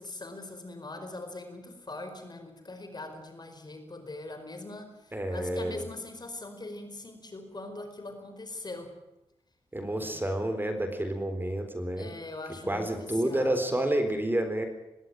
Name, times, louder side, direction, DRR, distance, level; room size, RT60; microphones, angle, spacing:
voice 1, 0.0-8.9 10.0-10.1 12.0-13.6, left 2 dB, 40° left, 7 dB, 4.7 m, -41 dB
voice 2, 5.1-5.8 9.7-12.1 12.7-14.7, right 1 dB, 20° right, 8 dB, 3.9 m, -29 dB
20.5 x 16.0 x 9.1 m, 0.95 s
cardioid pair, 50°, 11 cm